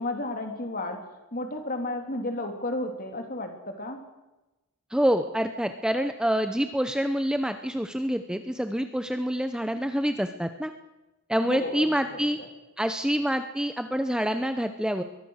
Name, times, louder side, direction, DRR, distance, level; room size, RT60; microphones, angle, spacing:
voice 1, 0.0-4.0 11.5-12.2, left 2 dB, 40° left, 5 dB, 3.3 m, -33 dB
voice 2, 4.9-10.7 11.3-12.4 12.8-15.0, equal, 5° right, 8 dB, 0.7 m, -27 dB
23.0 x 19.0 x 6.5 m, 1.0 s
head